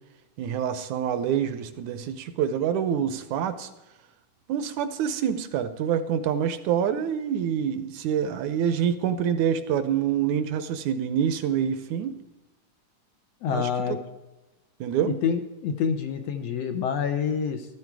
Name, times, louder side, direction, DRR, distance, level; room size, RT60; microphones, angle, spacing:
voice 1, 0.4-3.7 4.5-12.2 13.5-14.0 14.8-15.2, right 8 dB, 75° right, 11 dB, 1.9 m, -26 dB
voice 2, 13.4-14.0 15.0-17.7, left 7 dB, 70° left, 8 dB, 1.6 m, -27 dB
13.5 x 13.0 x 4.7 m, 1.0 s
omnidirectional pair, 3.8 m